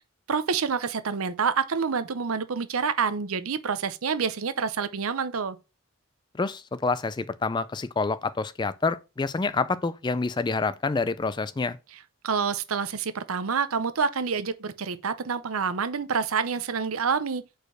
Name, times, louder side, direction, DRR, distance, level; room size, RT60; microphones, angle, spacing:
voice 1, 0.3-5.6 12.2-17.4, right 6 dB, 75° right, 0.7 m, -27 dB
voice 2, 6.3-11.8, left 4 dB, 20° left, 0.3 m, -27 dB
5.1 x 4.3 x 6.1 m
head